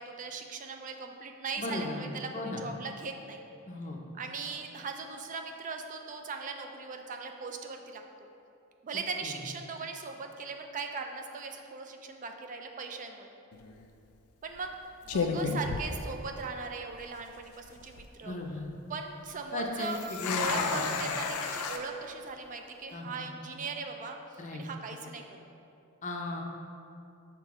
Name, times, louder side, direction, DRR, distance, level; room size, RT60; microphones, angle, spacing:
voice 1, 0.0-3.4 4.1-8.0 8.8-13.3 14.4-14.7 15.1-18.4 18.9-20.0 20.3-25.5, right 4 dB, 35° right, 4 dB, 0.4 m, -39 dB
voice 2, 1.6-2.7 3.7-4.0 9.2-9.4 18.2-18.8 19.5-21.0 22.9-23.3 24.4-24.6 26.0-26.4, left 2 dB, 35° left, 1 dB, 0.6 m, -36 dB
sound 1, 13.5-13.8 14.6-14.7 15.1-16.6 16.9-17.0 17.6-18.0 19.8-21.8, left 4 dB, 90° left, 0.5 m, -32 dB
6.0 x 3.9 x 4.8 m, 2.6 s
head